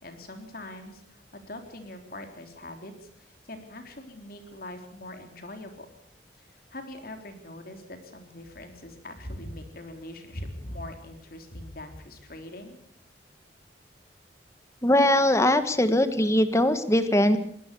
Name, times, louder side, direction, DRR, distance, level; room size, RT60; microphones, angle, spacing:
voice 1, 0.0-5.9 6.5-12.8, left 1 dB, 55° left, 6 dB, 3.7 m, -42 dB
voice 2, 14.8-17.4, left 1 dB, 15° left, 11 dB, 1.6 m, -21 dB
23.0 x 18.5 x 6.9 m, 0.68 s
head